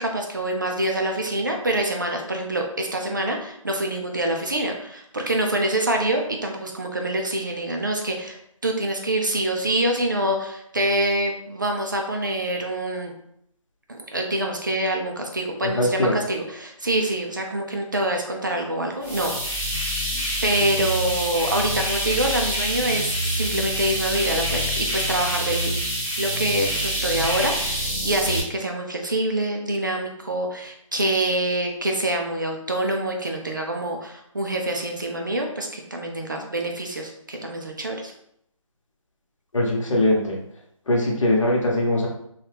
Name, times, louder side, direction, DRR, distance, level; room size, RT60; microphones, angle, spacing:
voice 1, 0.0-13.1 13.9-19.3 20.4-25.7 26.2-38.1, right 1 dB, 35° right, 2 dB, 0.4 m, -26 dB
voice 2, 15.8-16.1 39.5-40.4 40.9-42.1, left 1 dB, 65° left, -1 dB, 1.0 m, -21 dB
sound 1, 19.0-28.4, equal, 5° right, 1.0 m, -26 dB
2.8 x 2.3 x 3.3 m, 0.72 s
figure-of-eight pair, 170°, 18 cm